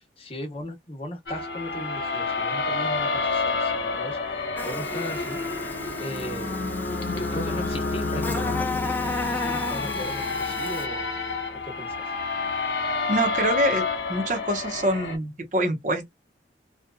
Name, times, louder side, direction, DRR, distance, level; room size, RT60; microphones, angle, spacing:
voice 1, 0.0-5.4 6.0-6.6 7.1-11.1 11.6-11.9, equal, 30° left, 0.9 m, -38 dB
sound 1, 1.3-15.2, left 3 dB, 75° left, 1.1 m, -29 dB
Buzz, 4.6-10.8, left 3 dB, 10° left, 0.4 m, -34 dB
voice 2, 13.1-13.8 14.1-16.1, right 1 dB, 45° right, 0.9 m, -25 dB
2.9 x 2.4 x 2.2 m
head